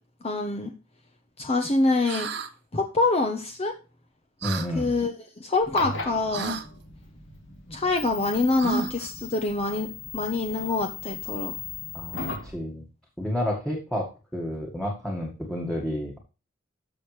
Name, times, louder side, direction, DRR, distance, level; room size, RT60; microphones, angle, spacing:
voice 1, 0.2-0.7 1.4-2.3 2.7-3.7 4.7-5.1 5.4-6.5 7.7-9.9 10.1-11.6, left 3 dB, 30° left, 4 dB, 1.0 m, -25 dB
sound 1, 2.1-2.5 4.4-4.7 6.3-6.7 8.6-9.1, right 4 dB, 60° right, 1.2 m, -31 dB
voice 2, 4.4-4.9 11.9-12.8 13.2-16.2, equal, 5° left, -2 dB, 1.8 m, -30 dB
sound 2, 5.6-12.5, left 5 dB, 70° left, 3.3 m, -37 dB
12.5 x 6.4 x 3.3 m, 0.31 s
head